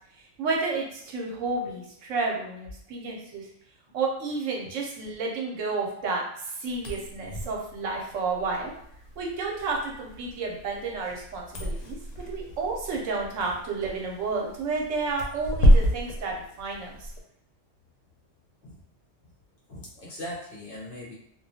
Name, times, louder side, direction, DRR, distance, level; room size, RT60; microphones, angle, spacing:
voice 1, 0.4-3.5 3.9-8.7 9.2-17.1, right 3 dB, 80° right, -1 dB, 1.0 m, -31 dB
sound 1, 6.7-17.2, equal, 85° left, 1.0 m, -28 dB
voice 2, 19.7-21.1, left 1 dB, 55° left, -4 dB, 0.7 m, -40 dB
2.3 x 2.2 x 2.7 m, 0.70 s
omnidirectional pair, 1.3 m